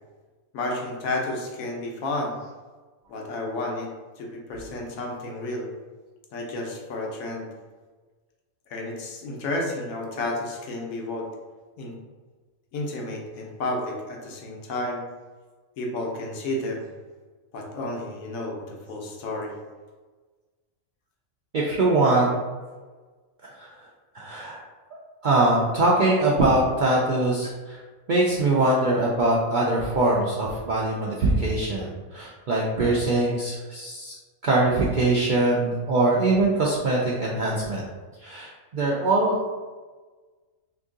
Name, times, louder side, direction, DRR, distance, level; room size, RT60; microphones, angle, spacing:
voice 1, 0.5-2.3 3.1-5.7 6.3-7.5 8.7-11.3 11.8-11.9 12.7-15.0 15.8-16.9 17.5-19.5, left 2 dB, 90° left, 0 dB, 1.1 m, -31 dB
voice 2, 21.5-22.4 23.6-23.7 24.1-24.6 25.2-27.8 28.1-34.1 34.4-37.8 38.2-39.4, right 2 dB, 75° right, -4 dB, 0.4 m, -22 dB
2.9 x 2.6 x 3.6 m, 1.3 s
omnidirectional pair, 1.4 m